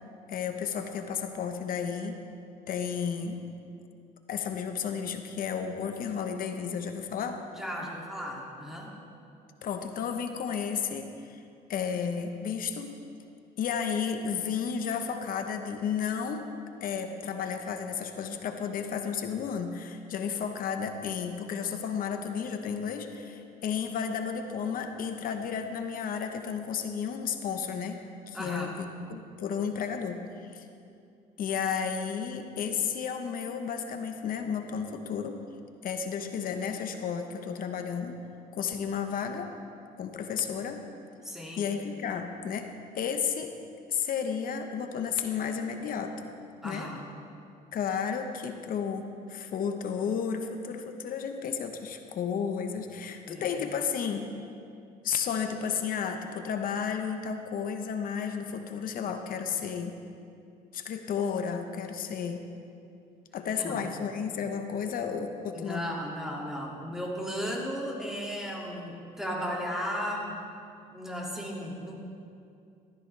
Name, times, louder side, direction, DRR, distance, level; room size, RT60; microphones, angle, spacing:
voice 1, 0.3-2.2 2.7-3.4 4.3-7.4 9.6-11.4 11.7-13.0 13.6-16.5 16.8-30.6 31.4-35.4 35.8-38.1 38.5-39.5 40.0-40.9 41.6-42.7 42.9-43.5 43.9-46.3 46.6-46.9 47.7-54.3 55.0-59.9 60.7-62.4 63.3-65.8, left 7 dB, 55° left, 6 dB, 1.0 m, -32 dB
voice 2, 7.6-8.9 28.3-28.7 41.2-41.6 46.6-47.0 53.3-53.5 63.5-63.8 65.5-70.4 70.9-72.0, equal, 5° right, -3 dB, 2.4 m, -35 dB
14.5 x 13.5 x 3.3 m, 2.5 s
cardioid pair, 110°, 17 cm